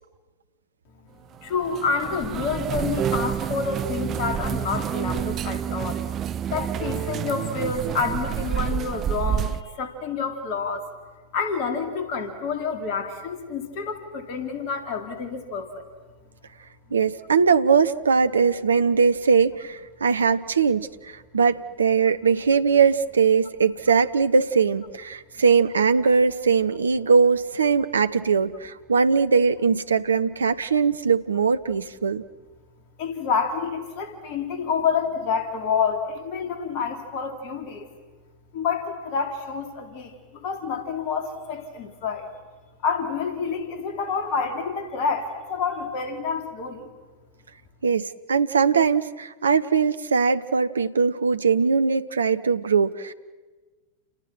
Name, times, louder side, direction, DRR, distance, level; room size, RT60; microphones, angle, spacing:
voice 1, 1.4-6.0 6.5-10.9 11.3-15.8 33.0-37.9 38.5-42.3 42.8-46.9, left 5 dB, 45° left, 6 dB, 3.5 m, -28 dB
sound 1, 1.4-9.6, right 9 dB, 30° right, 0.8 m, -28 dB
voice 2, 16.9-32.2 47.8-53.1, right 5 dB, 70° right, 12 dB, 0.8 m, -21 dB
30.0 x 29.5 x 6.2 m, 1.3 s
figure-of-eight pair, 90°, 0 cm